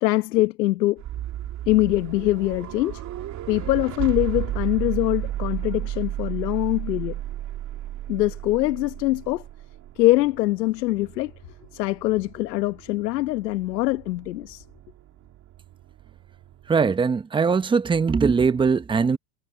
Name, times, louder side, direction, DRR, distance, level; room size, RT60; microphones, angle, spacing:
voice 1, 0.0-1.0 1.7-3.0 3.5-7.2 8.1-9.4 10.0-11.3 11.7-14.6, left 17 dB, 85° left, 1.1 m, -23 dB
sound 1, 1.0-16.9, right 13 dB, 35° right, 2.7 m, -34 dB
voice 2, 16.7-19.2, right 5 dB, 10° right, 0.7 m, -21 dB
supercardioid pair, 125°, 48 cm